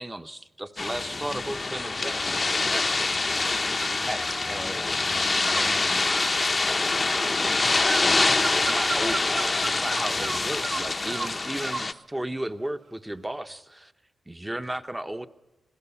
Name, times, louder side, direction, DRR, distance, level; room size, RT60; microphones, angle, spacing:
voice 1, 0.0-2.2 2.7-3.1 3.8-4.9 5.5-6.2 8.0-13.9 14.3-15.3, right 1 dB, 10° right, 10 dB, 0.9 m, -35 dB
sound 1, 0.8-11.9, left 3 dB, 30° left, 0.7 m, -25 dB
sound 2, 3.8-4.5 5.4-11.9, right 4 dB, 45° right, 0.8 m, -36 dB
26.0 x 17.0 x 7.1 m, 1.1 s
wide cardioid pair, 110°, 0 cm